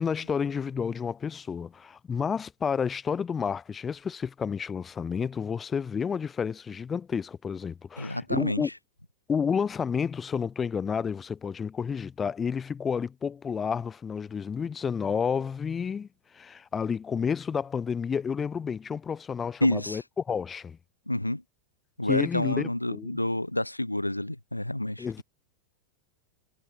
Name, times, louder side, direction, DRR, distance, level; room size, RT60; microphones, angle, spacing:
voice 1, 0.0-8.7 9.3-16.1 16.3-20.8 22.0-23.2 25.0-25.2, left 6 dB, 20° left, 0.5 m, -30 dB
voice 2, 8.0-8.6 19.6-20.0 21.1-21.4 22.0-25.1, left 1 dB, 85° left, 0.4 m, -28 dB
figure-of-eight pair, 90°, 0 cm